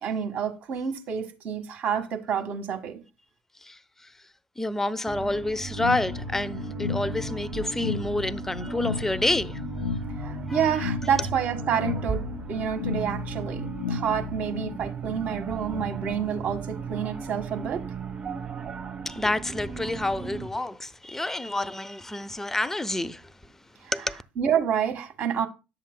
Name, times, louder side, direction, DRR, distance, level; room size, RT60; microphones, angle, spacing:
voice 1, 0.0-3.0 10.2-12.2 12.5-13.6 13.9-17.8 23.8-23.9 24.4-25.5, right 8 dB, 45° right, 1.6 m, -28 dB
voice 2, 4.6-9.6 10.5-10.7 19.0-23.2 23.9-24.2, left 2 dB, 10° left, 0.6 m, -28 dB
sound 1, 5.0-20.5, right 5 dB, 30° right, 2.3 m, -36 dB
sound 2, 5.8-14.8, left 7 dB, 75° left, 0.3 m, -34 dB
11.0 x 7.2 x 2.2 m
figure-of-eight pair, 65°, 4 cm